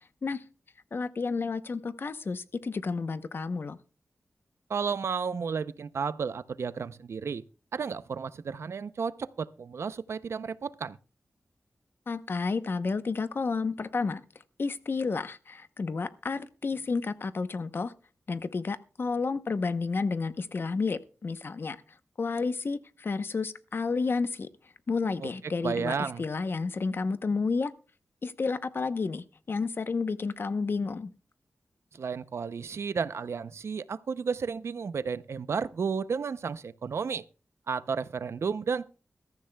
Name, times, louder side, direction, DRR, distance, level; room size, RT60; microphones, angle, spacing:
voice 1, 0.9-3.8 12.1-14.2 14.6-17.9 18.3-21.8 22.2-24.5 24.9-27.7 28.2-31.1, left 4 dB, 50° left, 0.8 m, -31 dB
voice 2, 4.7-7.4 7.7-11.0 25.2-25.3 25.6-26.3 31.9-37.2 37.7-38.9, right 5 dB, 75° right, 0.6 m, -32 dB
21.5 x 13.5 x 2.3 m
wide cardioid pair, 135°, 5 cm